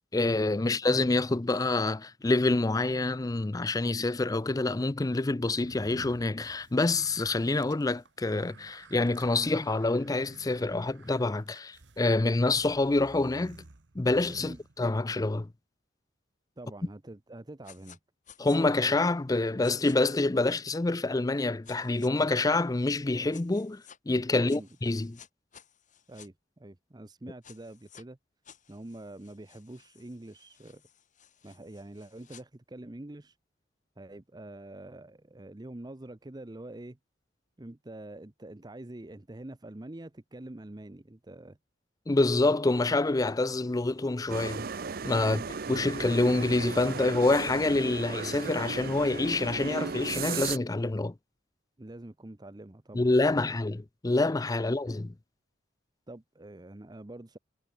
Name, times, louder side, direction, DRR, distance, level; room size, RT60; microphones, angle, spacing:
voice 1, 0.1-13.6 14.0-15.5 18.4-25.2 42.1-44.7 45.0-45.4 45.7-51.1 52.9-55.1, left 2 dB, 20° left, 0.5 m, -27 dB
sound 1, 5.5-15.2, right 2 dB, 75° right, 1.3 m, -53 dB
voice 2, 16.6-18.0 24.3-24.7 26.1-28.2 28.7-30.8 31.4-33.4 34.0-37.0 37.6-41.6 45.2-45.5 51.8-53.5 54.6-54.8 56.1-57.4, right 1 dB, 20° right, 0.7 m, -45 dB
sound 2, 17.6-18.0 18.3-18.6 19.6-20.0 21.6-22.1 23.3-24.0 24.5-26.3 27.4-28.0 28.4-32.4, left 8 dB, 45° left, 5.3 m, -55 dB
sound 3, 44.3-50.6, right 5 dB, 55° right, 0.7 m, -36 dB
head